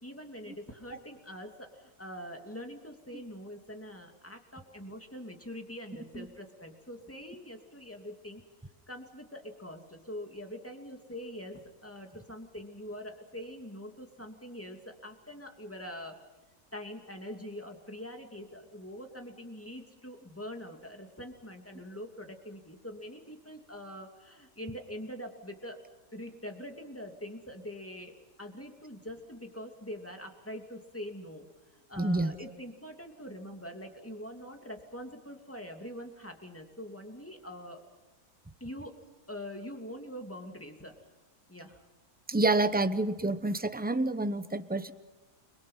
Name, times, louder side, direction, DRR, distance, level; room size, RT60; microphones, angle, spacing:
voice 1, 0.0-8.4 8.9-16.1 16.7-25.8 26.1-28.1 28.4-31.5 31.9-37.8 38.6-38.9 39.3-41.0 41.5-41.8, equal, 10° left, 4 dB, 2.7 m, -44 dB
voice 2, 32.0-32.4 42.3-44.9, right 2 dB, 10° right, 11 dB, 0.6 m, -28 dB
30.0 x 23.0 x 5.7 m, 1.2 s
omnidirectional pair, 1.8 m